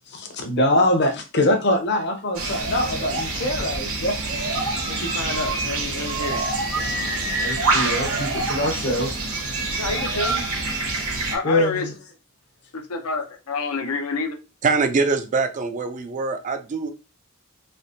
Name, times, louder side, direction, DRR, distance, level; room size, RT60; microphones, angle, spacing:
voice 1, 0.1-4.5 6.0-6.1 6.7-9.1 9.7-9.8 11.4-11.9, left 1 dB, 50° left, 0.7 m, -24 dB
sound 1, 2.3-11.3, right 3 dB, 70° right, 1.0 m, -26 dB
voice 2, 4.9-6.4 9.8-10.4 11.3-11.9 12.7-14.4, left 3 dB, 85° left, 0.7 m, -28 dB
voice 3, 14.6-16.9, right 4 dB, 35° right, 0.3 m, -23 dB
3.3 x 2.9 x 2.7 m
head